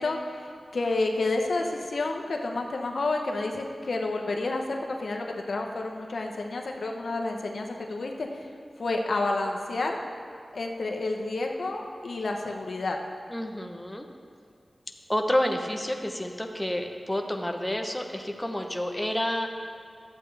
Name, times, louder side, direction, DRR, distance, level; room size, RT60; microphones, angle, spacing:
voice 1, 0.0-8.5 8.8-10.0 10.5-13.0, left 2 dB, 80° left, 2 dB, 0.8 m, -30 dB
voice 2, 13.3-14.0 15.1-19.5, left 1 dB, 10° left, 3 dB, 0.8 m, -29 dB
12.5 x 8.2 x 3.3 m, 2.3 s
cardioid pair, 50°, 0 cm